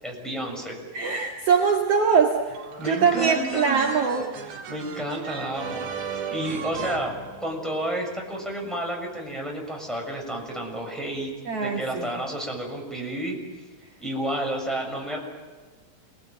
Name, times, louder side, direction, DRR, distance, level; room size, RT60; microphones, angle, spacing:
voice 1, 0.0-0.8 2.8-3.9 4.4-5.9 6.3-11.3 11.6-13.4 14.0-15.2, right 1 dB, ahead, -1 dB, 6.5 m, -31 dB
voice 2, 0.9-2.4 2.8-4.3 11.5-12.2, right 6 dB, 50° right, 2 dB, 2.6 m, -22 dB
sound 1, 2.5-7.9, right 7 dB, 85° right, 3.7 m, -36 dB
28.0 x 20.5 x 9.2 m, 1.3 s
omnidirectional pair, 4.3 m